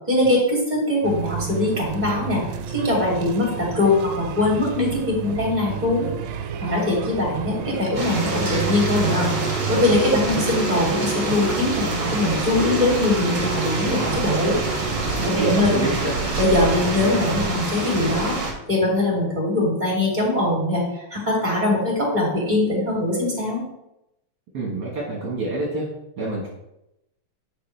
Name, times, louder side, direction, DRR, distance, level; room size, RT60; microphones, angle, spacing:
voice 1, 0.1-2.4 2.7-6.1 6.6-9.4 9.7-14.6 15.2-15.9 16.4-18.4 18.7-20.8 21.1-23.6, left 2 dB, 20° right, -3 dB, 2.9 m, -22 dB
sound 1, 1.0-17.5, right 8 dB, 90° right, 1.5 m, -31 dB
sound 2, 7.9-18.5, right 2 dB, 40° right, 2.0 m, -26 dB
voice 2, 15.3-16.1 24.5-25.9 26.2-26.5, right 2 dB, 55° right, -3 dB, 2.0 m, -26 dB
9.8 x 5.9 x 3.3 m, 0.87 s
omnidirectional pair, 2.3 m